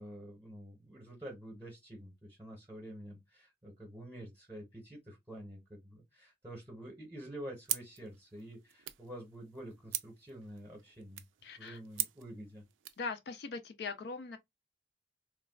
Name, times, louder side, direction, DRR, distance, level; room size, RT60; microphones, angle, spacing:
voice 1, 0.0-11.2 11.6-12.6, right 1 dB, 15° right, 0.8 m, -48 dB
sound 1, 7.6-13.1, right 14 dB, 85° right, 0.4 m, -42 dB
voice 2, 11.4-11.8 13.0-14.4, left 4 dB, 55° left, 0.4 m, -40 dB
3.2 x 2.3 x 2.2 m
head